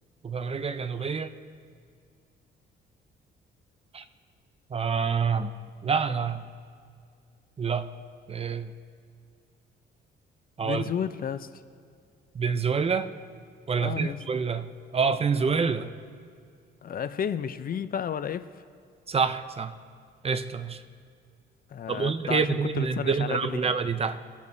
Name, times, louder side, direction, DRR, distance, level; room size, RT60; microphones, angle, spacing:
voice 1, 0.2-1.3 3.9-4.0 4.7-5.5 5.8-6.5 7.6-7.9 8.3-8.7 10.6-10.8 12.3-13.1 13.7-15.9 19.1-19.8 20.2-20.8 21.9-24.2, right 5 dB, 30° right, 11 dB, 0.5 m, -27 dB
voice 2, 10.6-11.5 13.8-14.2 15.3-15.4 16.8-18.5 21.7-23.7, left 8 dB, 45° left, 13 dB, 0.5 m, -32 dB
24.5 x 8.2 x 2.7 m, 2.2 s
cardioid pair, 90°, 20 cm